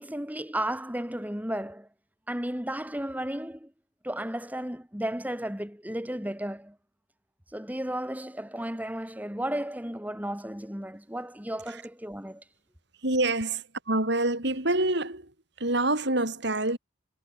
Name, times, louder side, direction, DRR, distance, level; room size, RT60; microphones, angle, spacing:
voice 1, 0.0-1.9 2.3-3.7 4.0-6.8 7.5-12.4, right 1 dB, 10° right, 3.2 m, -34 dB
voice 2, 13.0-16.8, right 2 dB, 55° right, 4.3 m, -27 dB
head